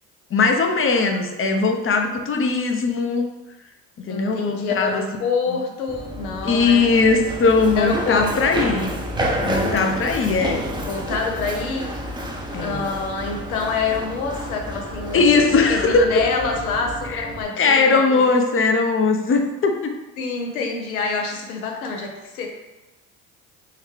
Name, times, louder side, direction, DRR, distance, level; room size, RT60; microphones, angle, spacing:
voice 1, 0.3-3.3 4.0-5.0 5.5-5.6 6.4-8.9 9.4-10.6 12.5-12.9 15.1-16.1 17.1-17.3 17.6-19.9, left 4 dB, 30° left, 4 dB, 0.6 m, -19 dB
voice 2, 4.1-6.9 7.8-8.7 9.7-9.8 10.9-11.9 12.6-18.2 20.2-22.5, left 4 dB, 85° left, 2 dB, 0.8 m, -26 dB
Run, 5.9-17.4, equal, 10° right, 0.6 m, -30 dB
3.9 x 3.1 x 3.1 m, 1.0 s
hypercardioid pair, 65°, 42 cm